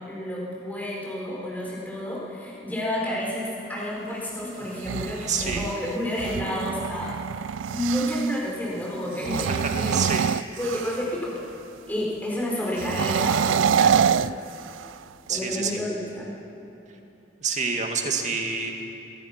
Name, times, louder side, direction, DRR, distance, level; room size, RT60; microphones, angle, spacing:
voice 1, 0.0-7.1 7.7-10.1 10.6-11.4 11.9-14.3 15.3-16.3, equal, 10° left, -4 dB, 4.6 m, -30 dB
sound 1, 4.6-8.4 9.1-11.2 12.7-15.0, right 7 dB, 85° right, 0.4 m, -26 dB
voice 2, 5.3-5.7 9.6-10.2 15.3-15.8 17.4-18.7, right 5 dB, 40° right, 2 dB, 2.0 m, -27 dB
22.5 x 19.5 x 5.9 m, 2.9 s
head